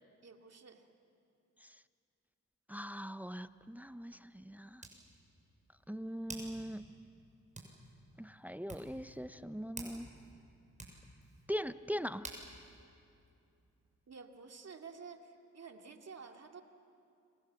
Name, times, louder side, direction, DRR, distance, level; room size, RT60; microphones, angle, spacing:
voice 1, 0.2-0.9 14.1-16.6, right 5 dB, 55° right, 3 dB, 2.6 m, -51 dB
voice 2, 2.7-4.9 5.9-6.8 8.2-10.1 11.5-12.3, equal, 5° right, 13 dB, 0.7 m, -41 dB
Hands, 3.2-14.0, right 2 dB, 25° right, 7.2 m, -54 dB
29.5 x 24.5 x 7.6 m, 2.6 s
cardioid pair, 65°, 32 cm